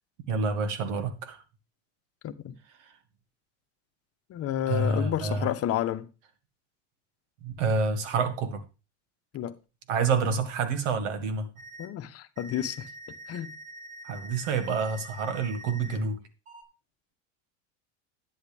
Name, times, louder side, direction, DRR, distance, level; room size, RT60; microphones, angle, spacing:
voice 1, 0.3-1.4 2.8-2.9 4.7-5.5 7.4-8.6 9.9-11.5 14.0-16.2, right 4 dB, 80° right, 2.0 m, -28 dB
voice 2, 2.2-2.5 4.3-6.1 9.3-9.5 11.8-12.9 13.3-13.5, left 11 dB, 40° left, 1.0 m, -30 dB
sound 1, 11.6-11.9 12.4-16.0 16.5-16.6, right 1 dB, 45° right, 5.4 m, -45 dB
11.5 x 9.7 x 3.4 m
supercardioid pair, 115°, 37 cm